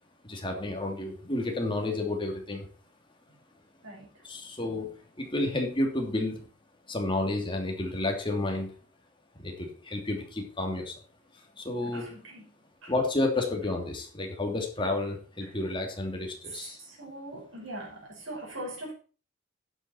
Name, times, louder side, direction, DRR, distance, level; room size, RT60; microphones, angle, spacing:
voice 1, 0.2-2.7 4.2-6.5 6.9-8.7 9.4-10.9 11.6-12.1 12.9-16.8, left 2 dB, 25° left, 2.7 m, -31 dB
voice 2, 3.8-4.2 11.8-12.5 12.8-12.9 15.4-15.6 16.5-18.9, right 1 dB, 85° right, 5.5 m, -42 dB
11.5 x 8.4 x 4.4 m
head